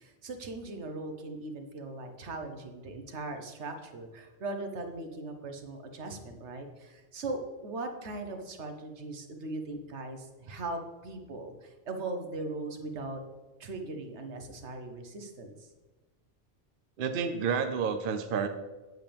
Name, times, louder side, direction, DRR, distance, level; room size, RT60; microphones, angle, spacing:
voice 1, 0.0-13.2 13.6-15.7, right 2 dB, 75° right, 5 dB, 1.3 m, -39 dB
voice 2, 17.0-18.5, right 6 dB, 55° right, 7 dB, 0.7 m, -30 dB
9.1 x 8.2 x 3.4 m, 1.2 s
omnidirectional pair, 1.2 m